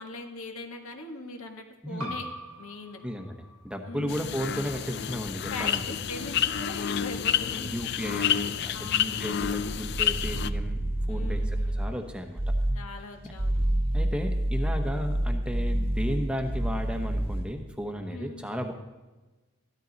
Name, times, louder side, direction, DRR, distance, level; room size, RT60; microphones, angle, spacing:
voice 1, 0.0-2.3 2.6-3.0 3.9-4.3 5.5-7.7 8.7-9.2 11.1-11.8 12.7-13.6 18.1-18.4, left 3 dB, 70° left, 3 dB, 1.6 m, -40 dB
voice 2, 1.8-2.2 3.0-5.8 7.5-11.4 11.7-12.5 13.9-18.7, equal, 5° right, 5 dB, 1.0 m, -34 dB
sound 1, 2.0-7.2, equal, 80° right, 1.7 m, -45 dB
sound 2, 4.1-10.5, left 9 dB, 50° left, 0.4 m, -29 dB
sound 3, 9.4-12.0 12.3-12.9 13.3-17.5, right 1 dB, 25° right, 1.3 m, -28 dB
14.5 x 12.5 x 4.0 m, 1.2 s
head